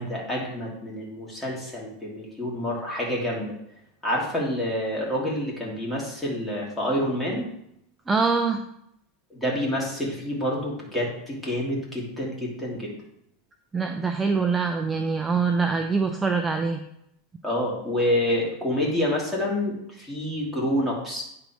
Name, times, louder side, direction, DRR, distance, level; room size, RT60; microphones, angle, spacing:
voice 1, 0.0-3.5 4.0-7.5 9.3-12.9 17.4-21.2, left 1 dB, 5° left, -5 dB, 3.1 m, -28 dB
voice 2, 8.1-8.6 13.7-16.8, right 4 dB, 15° right, 5 dB, 0.6 m, -24 dB
9.8 x 4.1 x 4.6 m, 0.77 s
supercardioid pair, 120°, 0 cm